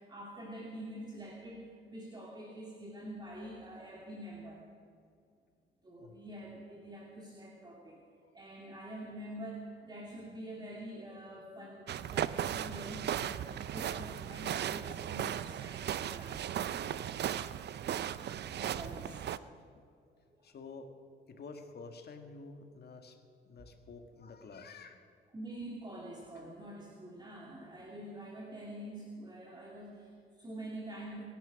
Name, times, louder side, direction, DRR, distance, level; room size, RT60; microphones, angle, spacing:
voice 1, 0.0-4.6 5.8-8.0 8.3-16.5 18.5-19.7 20.4-20.5 25.3-31.2, right 1 dB, 20° right, -2 dB, 2.4 m, -46 dB
sound 1, 11.9-19.4, right 10 dB, 60° right, 0.6 m, -36 dB
voice 2, 20.4-20.9 21.3-23.2 23.4-25.1, left 4 dB, 55° left, 6 dB, 1.8 m, -49 dB
23.5 x 11.0 x 5.3 m, 2.3 s
cardioid pair, 90°, 20 cm